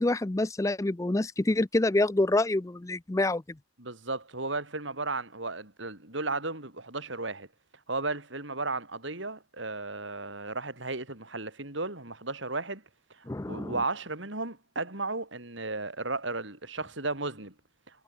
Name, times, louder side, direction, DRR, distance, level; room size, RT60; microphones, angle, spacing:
voice 1, 0.0-3.4 13.3-13.7, left 2 dB, 15° left, 0.4 m, -26 dB
voice 2, 3.8-7.5 7.9-12.8 13.5-17.5, right 3 dB, 65° right, 4.4 m, -34 dB
head